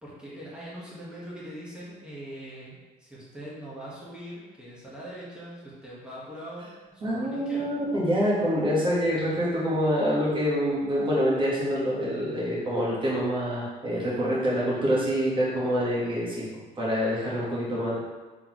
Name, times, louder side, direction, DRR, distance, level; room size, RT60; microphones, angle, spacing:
voice 1, 0.0-7.7, right 1 dB, 5° right, -8 dB, 1.3 m, -42 dB
voice 2, 7.0-16.5 16.8-18.0, equal, 30° right, -6 dB, 1.4 m, -26 dB
4.0 x 3.3 x 3.0 m, 1.2 s
cardioid pair, 110°, 17 cm